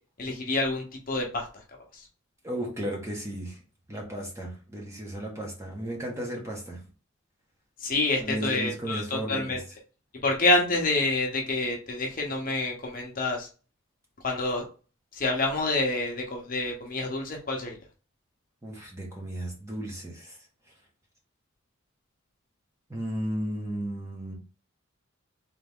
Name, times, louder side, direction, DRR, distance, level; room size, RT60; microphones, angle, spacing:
voice 1, 0.2-1.5 1.9-2.0 7.8-9.6 10.2-13.5 14.2-14.6 15.1-17.8, left 2 dB, 45° left, 1 dB, 0.9 m, -27 dB
voice 2, 2.4-3.6 3.9-6.8 8.2-9.6 18.6-20.3 22.9-24.3, right 1 dB, 15° right, -1 dB, 1.3 m, -34 dB
3.5 x 3.4 x 3.6 m, 0.35 s
head